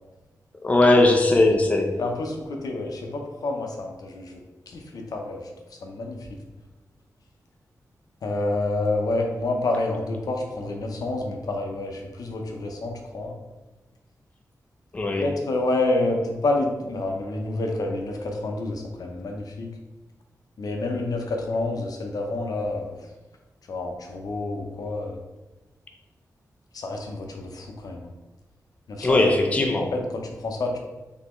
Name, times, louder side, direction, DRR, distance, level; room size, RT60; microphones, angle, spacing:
voice 1, 0.6-2.0 14.9-15.3 29.0-29.9, left 2 dB, 20° left, 3 dB, 0.4 m, -19 dB
voice 2, 2.0-5.5 5.8-6.4 8.2-13.3 15.2-19.7 20.6-23.0 23.7-25.2 26.7-28.1 28.9-30.8, left 2 dB, 70° left, 2 dB, 0.6 m, -28 dB
4.0 x 3.2 x 3.0 m, 1.1 s
wide cardioid pair, 135°, 7 cm